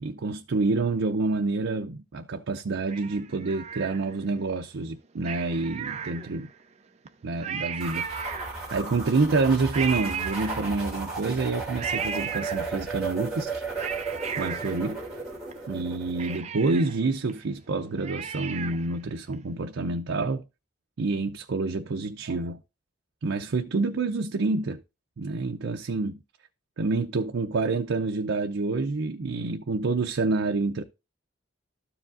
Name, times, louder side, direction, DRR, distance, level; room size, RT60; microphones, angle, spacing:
voice 1, 0.0-6.5 7.2-8.1 8.7-13.6 14.4-15.0 15.7-20.4 21.0-22.6 23.2-24.8 25.2-26.2 26.8-30.8, right 3 dB, 80° right, 0.5 m, -28 dB
Cat, 2.9-4.4 5.2-6.6 7.1-7.2 7.4-8.9 9.7-11.1 11.8-13.0 13.5-15.5 15.8-15.9 16.2-19.0 19.3-19.4, right 7 dB, 35° right, 0.5 m, -36 dB
sound 1, 7.8-16.4, right 3 dB, 5° right, 2.9 m, -35 dB
13.0 x 4.9 x 2.5 m
head